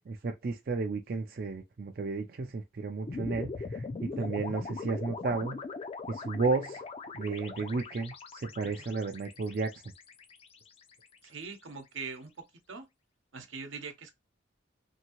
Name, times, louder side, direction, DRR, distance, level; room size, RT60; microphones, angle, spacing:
voice 1, 0.0-5.6 6.1-6.8 7.1-9.7, right 3 dB, 45° right, 0.4 m, -33 dB
sound 1, 3.1-11.4, left 4 dB, 30° left, 0.3 m, -41 dB
voice 2, 11.2-12.3 12.7-12.9 13.3-14.1, right 4 dB, 80° right, 0.8 m, -42 dB
2.7 x 2.6 x 2.8 m
head